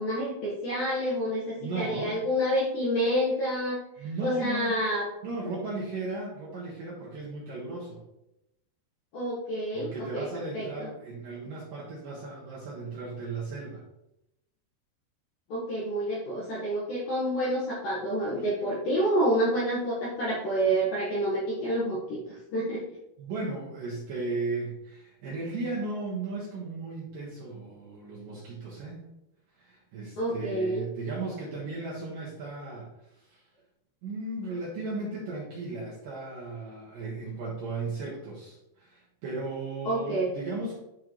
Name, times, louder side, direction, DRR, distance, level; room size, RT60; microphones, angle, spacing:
voice 1, 0.0-3.8 4.2-5.0 9.1-10.3 10.5-10.9 15.5-22.8 30.2-30.9 39.8-40.3, right 1 dB, 75° left, -7 dB, 2.1 m, -28 dB
voice 2, 1.6-2.2 4.0-4.7 5.2-8.0 9.7-13.8 23.2-29.0 29.6-32.9 33.2-33.4 34.0-40.8, right 3 dB, 90° right, -6 dB, 1.9 m, -36 dB
11.5 x 3.8 x 3.0 m, 0.88 s
omnidirectional pair, 5.9 m